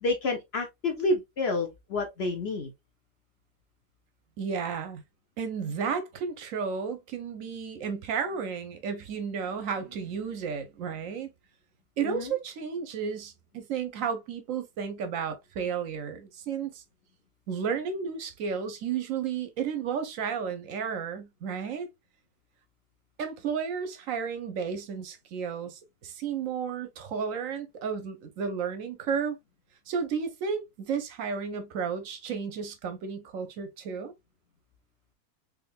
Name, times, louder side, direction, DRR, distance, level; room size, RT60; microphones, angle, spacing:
voice 1, 0.0-2.7 12.0-12.3, left 2 dB, 55° left, 0.7 m, -29 dB
voice 2, 4.4-5.0 5.4-11.3 12.0-16.8 17.5-21.9 23.2-29.4 29.9-34.1, right 6 dB, 70° right, 0.9 m, -33 dB
3.5 x 3.1 x 2.2 m
omnidirectional pair, 1.6 m